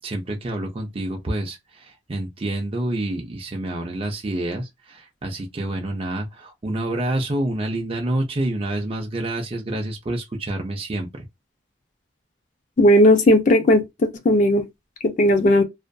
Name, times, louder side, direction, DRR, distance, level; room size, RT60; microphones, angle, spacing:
voice 1, 0.0-11.2, right 1 dB, 30° right, 0.5 m, -28 dB
voice 2, 12.8-13.8 14.2-14.6 15.0-15.6, left 1 dB, 40° left, 0.4 m, -15 dB
2.5 x 2.4 x 2.2 m
head